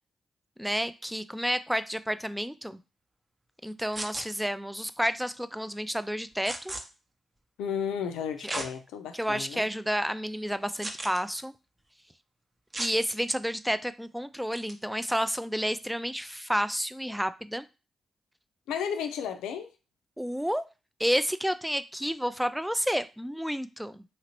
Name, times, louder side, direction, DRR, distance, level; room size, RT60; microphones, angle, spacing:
voice 1, 0.6-2.8 3.6-6.7 8.4-8.6 9.1-11.5 12.8-17.7 20.2-20.6 21.0-24.0, equal, 5° right, 13 dB, 0.3 m, -30 dB
sound 1, 3.9-4.3 6.4-6.8 8.5-8.7 9.3-9.4 10.8-11.2 12.7-12.9 14.5-14.7, right 1 dB, 30° right, 0.7 m, -34 dB
voice 2, 7.6-9.6 18.7-19.7, left 7 dB, 90° left, 7 dB, 0.4 m, -33 dB
3.0 x 2.8 x 2.9 m, 0.31 s
supercardioid pair, 45°, 0 cm